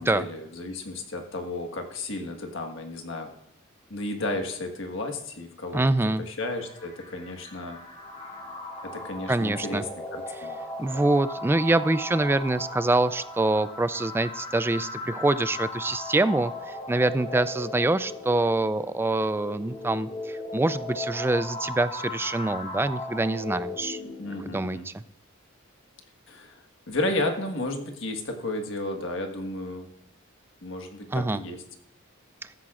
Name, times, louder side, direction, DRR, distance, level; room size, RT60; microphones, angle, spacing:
voice 1, 0.0-3.3 3.9-7.8 8.8-10.6 24.2-24.9 26.3-29.9 30.6-31.6, left 2 dB, 65° left, 5 dB, 1.5 m, -33 dB
voice 2, 5.7-6.2 9.3-9.8 10.8-24.0 24.5-25.0 31.1-31.4, right 2 dB, 10° right, 14 dB, 0.3 m, -25 dB
sound 1, 6.6-24.6, left 2 dB, 30° left, 1.9 m, -37 dB
15.0 x 13.0 x 2.5 m, 0.79 s
head